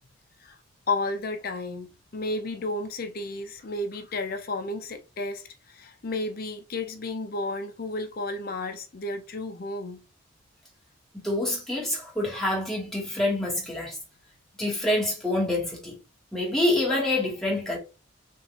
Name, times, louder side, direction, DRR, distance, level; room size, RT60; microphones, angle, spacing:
voice 1, 0.9-10.0, left 2 dB, 45° left, 0.6 m, -32 dB
voice 2, 11.1-14.0 14.6-16.0 16.3-17.8, left 1 dB, ahead, 1.3 m, -26 dB
3.6 x 2.5 x 2.9 m
head